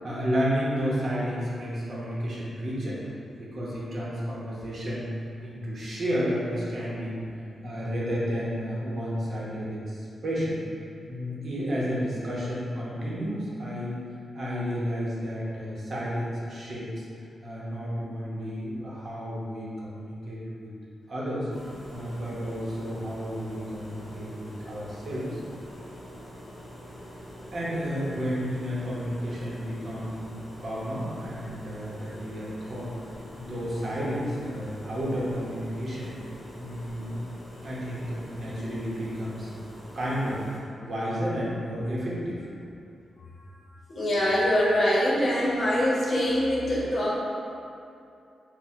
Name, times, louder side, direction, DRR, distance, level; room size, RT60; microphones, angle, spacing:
voice 1, 0.0-3.0 3.4-5.1 5.4-7.3 7.6-10.6 11.1-14.0 14.3-17.0 17.4-20.7 21.1-21.5 21.9-25.4 27.5-32.9 33.3-36.2 36.6-37.2 37.6-39.5 39.9-40.4 40.8-42.4, equal, 50° right, -6 dB, 0.8 m, -31 dB
sound 1, 21.5-40.6, equal, 15° left, 0.8 m, -44 dB
voice 2, 43.2-47.1, left 1 dB, 50° left, -6 dB, 0.9 m, -24 dB
3.4 x 2.1 x 4.3 m, 2.6 s
wide cardioid pair, 120°, 0 cm